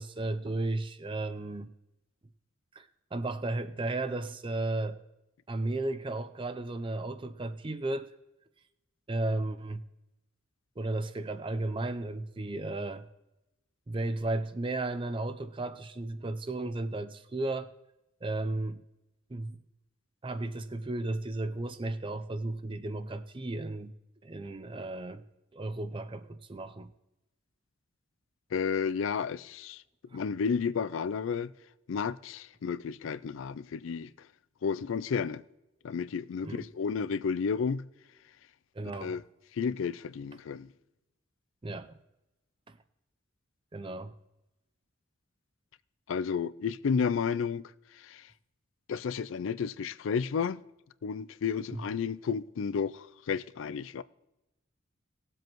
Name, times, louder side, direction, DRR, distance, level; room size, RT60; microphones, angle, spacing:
voice 1, 0.0-1.7 2.7-5.0 5.5-8.1 9.1-9.8 10.8-13.1 13.9-17.7 18.2-18.8 19.3-19.6 20.2-23.9 24.2-25.2 25.5-26.9 30.1-30.2 36.4-36.7 38.7-39.2 41.6-42.0 42.7-42.8 43.7-44.1 51.7-51.8, right 2 dB, 25° right, 0.5 m, -34 dB
voice 2, 28.5-29.8 30.1-31.5 31.9-34.1 34.6-35.4 35.8-37.8 39.0-39.2 39.5-40.7 46.1-47.7 48.0-48.2 48.9-50.6 51.0-54.0, left 6 dB, 70° left, 0.4 m, -32 dB
19.0 x 7.7 x 3.0 m
head